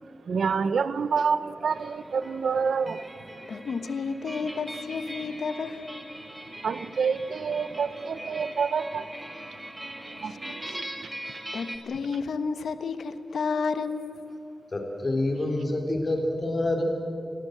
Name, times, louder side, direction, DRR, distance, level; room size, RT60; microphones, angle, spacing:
voice 1, 0.3-3.0 6.6-9.0 10.2-10.5, right 5 dB, 85° right, 14 dB, 0.9 m, -27 dB
sound 1, 1.7-11.8, right 1 dB, 10° right, 2.2 m, -41 dB
voice 2, 3.5-6.0 10.2-10.8 11.5-14.4, left 5 dB, 90° left, 10 dB, 1.2 m, -32 dB
voice 3, 14.7-16.8, left 2 dB, 35° left, 2 dB, 3.4 m, -27 dB
28.5 x 18.5 x 7.9 m, 2.7 s
wide cardioid pair, 170°, 0 cm